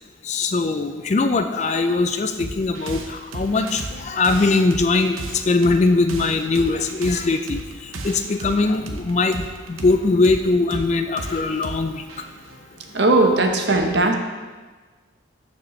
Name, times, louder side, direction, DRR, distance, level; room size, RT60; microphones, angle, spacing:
voice 1, 0.2-12.0, left 3 dB, 35° left, 8 dB, 0.3 m, -21 dB
sound 1, 2.4-13.5, right 2 dB, 85° right, 0.8 m, -35 dB
voice 2, 12.9-14.1, right 2 dB, 55° right, 3 dB, 0.8 m, -18 dB
12.0 x 5.0 x 3.2 m, 1.3 s
head